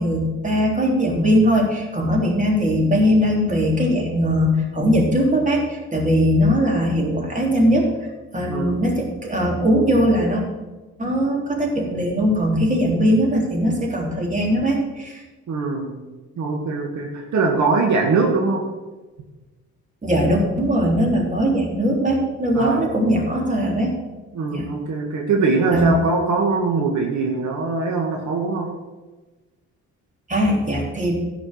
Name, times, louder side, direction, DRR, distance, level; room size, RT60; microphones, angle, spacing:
voice 1, 0.0-7.9 8.3-10.4 11.0-15.2 20.0-23.9 24.5-24.7 25.7-26.0 30.3-31.1, equal, 25° right, -1 dB, 3.4 m, -20 dB
voice 2, 8.5-8.8 15.5-15.9 16.4-18.6 22.6-22.9 24.3-28.7, right 4 dB, 70° right, 0 dB, 1.8 m, -22 dB
11.5 x 5.1 x 8.1 m, 1.2 s
cardioid pair, 90°, 30 cm